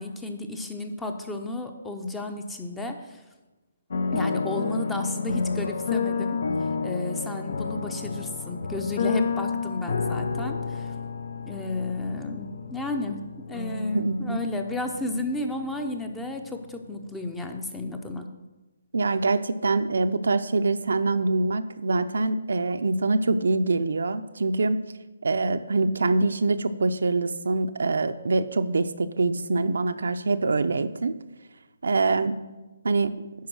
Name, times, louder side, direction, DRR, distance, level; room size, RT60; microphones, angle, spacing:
voice 1, 0.0-3.2 4.1-6.4 6.8-10.9 11.5-13.2 13.5-18.3, left 2 dB, 5° left, 6 dB, 0.6 m, -32 dB
sound 1, 3.9-16.9 17.2-17.3, left 5 dB, 60° left, 0.7 m, -30 dB
voice 2, 13.9-14.4 18.9-24.8 25.2-31.2 31.8-32.4 32.8-33.1, right 3 dB, 75° right, 9 dB, 0.6 m, -24 dB
10.5 x 4.6 x 6.1 m, 1.2 s
hypercardioid pair, 160°, 0 cm